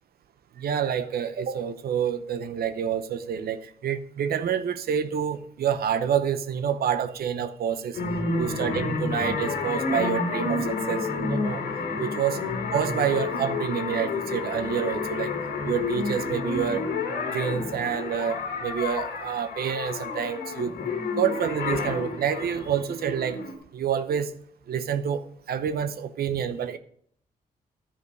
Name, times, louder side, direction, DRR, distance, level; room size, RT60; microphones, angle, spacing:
voice 1, 0.5-8.0 8.4-11.6 12.0-12.4 12.7-15.4 15.6-16.9 17.3-20.7 21.2-23.4 23.7-24.3 24.7-26.8, right 8 dB, 75° right, 0.8 m, -28 dB
sound 1, 7.9-23.5, left 4 dB, 85° left, 2.0 m, -30 dB
11.5 x 5.1 x 6.5 m
cardioid pair, 60°, 16 cm